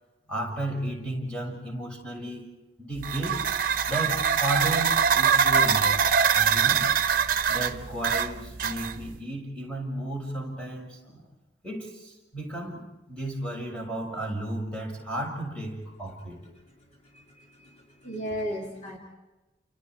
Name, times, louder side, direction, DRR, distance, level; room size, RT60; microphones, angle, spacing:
voice 1, 0.3-2.5 2.8-3.4 3.9-6.0 6.3-6.9 7.5-11.3 11.6-16.4, right 1 dB, 5° left, -1 dB, 6.0 m, -33 dB
sound 1, 3.0-9.2, right 7 dB, 50° right, 1.1 m, -23 dB
voice 2, 17.0-19.0, equal, 40° left, 0 dB, 2.9 m, -36 dB
30.0 x 29.5 x 4.6 m, 1.1 s
head